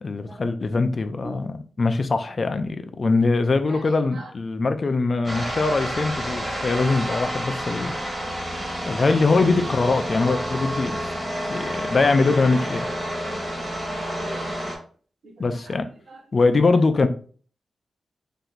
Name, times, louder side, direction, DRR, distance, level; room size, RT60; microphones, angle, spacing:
voice 1, 0.0-7.9 8.9-11.0 11.5-12.9 15.4-15.9 16.3-17.1, left 3 dB, 40° left, 0.5 m, -22 dB
sound 1, 5.2-14.8, equal, 15° right, 1.8 m, -29 dB
voice 2, 13.2-14.5, right 2 dB, 80° right, 1.1 m, -41 dB
4.5 x 2.7 x 3.9 m
wide cardioid pair, 135°, 0 cm